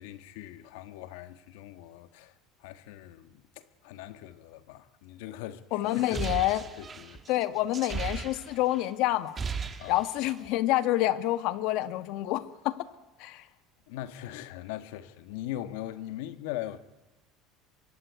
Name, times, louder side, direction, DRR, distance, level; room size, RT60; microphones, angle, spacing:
voice 1, 0.0-2.3 2.6-6.5 6.8-7.2 7.9-8.0 9.8-10.0 13.9-16.8, left 13 dB, 85° left, 1.6 m, -41 dB
voice 2, 5.7-6.6 7.3-9.4 9.9-12.8 13.2-13.4, left 15 dB, 65° left, 1.5 m, -28 dB
sound 1, 5.9-8.8 9.1-10.5, right 5 dB, 20° right, 1.6 m, -36 dB
25.0 x 24.0 x 9.5 m
cardioid pair, 150°, 0 cm